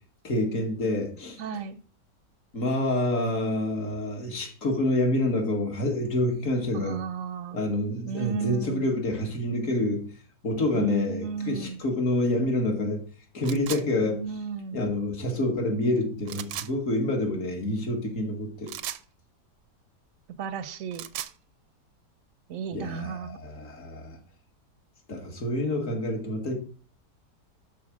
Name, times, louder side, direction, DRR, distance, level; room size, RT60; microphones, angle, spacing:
voice 1, 0.2-1.4 2.5-7.0 7.5-10.0 10.4-13.0 13.3-14.2 14.7-18.7 22.7-24.2 25.1-26.5, left 1 dB, 50° left, 2 dB, 2.4 m, -27 dB
voice 2, 1.4-1.8 6.7-7.6 8.1-8.9 10.7-11.8 14.0-14.8 20.4-21.0 22.5-23.4, right 7 dB, 60° right, 13 dB, 1.0 m, -34 dB
sound 1, 13.4-13.8 16.3-16.7 18.7-19.0 20.7-21.4, right 11 dB, 85° right, 1.3 m, -36 dB
12.0 x 4.4 x 6.2 m, 0.42 s
omnidirectional pair, 1.8 m